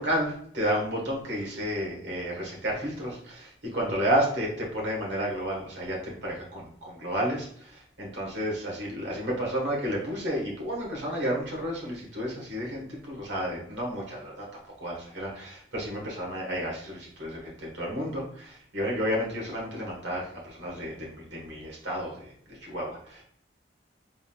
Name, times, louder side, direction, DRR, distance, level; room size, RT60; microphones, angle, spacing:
voice 1, 0.0-14.5 14.8-23.2, equal, 75° right, -2 dB, 1.4 m, -31 dB
3.8 x 3.7 x 2.4 m, 0.62 s
head